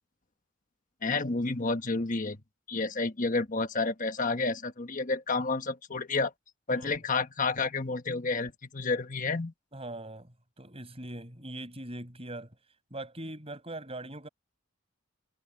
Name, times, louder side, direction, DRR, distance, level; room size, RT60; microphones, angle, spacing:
voice 1, 1.0-2.4 2.7-6.3 6.7-9.5, left 3 dB, 40° left, 1.3 m, -30 dB
voice 2, 6.7-7.0 9.7-10.3 10.6-12.5 12.9-14.3, right 1 dB, 30° right, 6.1 m, -41 dB
head